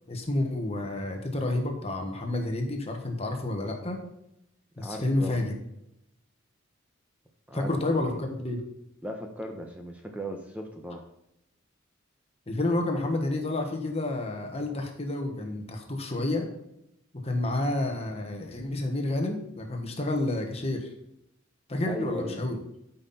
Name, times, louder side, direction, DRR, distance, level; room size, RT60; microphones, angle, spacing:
voice 1, 0.1-4.0 4.8-5.5 7.5-8.6 12.5-16.5 17.2-20.9 21.7-22.6, left 2 dB, 30° left, 3 dB, 1.4 m, -29 dB
voice 2, 4.8-5.4 7.5-8.2 9.0-11.0 21.8-22.6, equal, 5° right, 2 dB, 0.9 m, -37 dB
12.5 x 5.7 x 4.3 m, 0.82 s
head